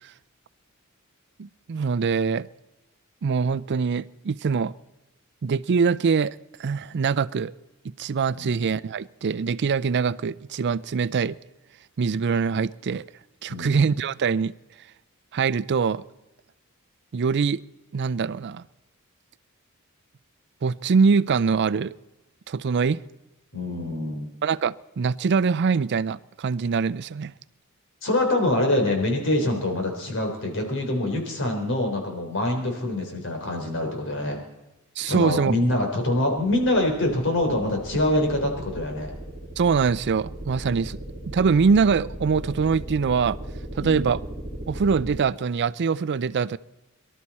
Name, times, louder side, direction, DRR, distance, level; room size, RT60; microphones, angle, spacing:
voice 1, 1.4-2.5 3.2-4.7 5.4-6.3 6.6-7.5 8.0-11.4 12.0-13.0 13.4-14.5 15.3-16.0 17.1-17.6 17.9-18.6 20.6-21.9 22.5-23.0 24.4-27.3 35.0-35.6 39.6-41.0 41.3-43.4 43.8-44.2 44.7-46.6, right 5 dB, 50° right, 0.4 m, -23 dB
voice 2, 23.5-24.3 28.0-34.4 35.0-39.1 43.8-44.1, left 1 dB, 60° left, 3.8 m, -25 dB
sound 1, 36.4-45.2, right 1 dB, 25° right, 4.3 m, -37 dB
23.0 x 12.5 x 4.3 m
head